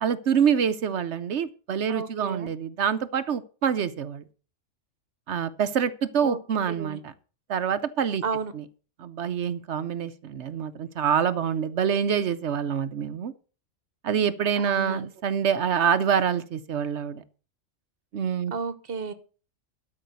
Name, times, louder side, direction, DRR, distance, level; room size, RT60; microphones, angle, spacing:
voice 1, 0.0-4.2 5.3-7.1 7.5-8.2 8.6-8.7 9.0-13.3 14.0-17.2 18.1-18.5, right 7 dB, 65° right, 13 dB, 1.0 m, -26 dB
voice 2, 1.9-2.5 6.2-6.4 6.7-7.0 8.2-8.5 14.6-15.1 18.5-19.1, right 5 dB, 50° right, 13 dB, 1.2 m, -32 dB
12.5 x 5.4 x 8.0 m, 0.38 s
omnidirectional pair, 1.3 m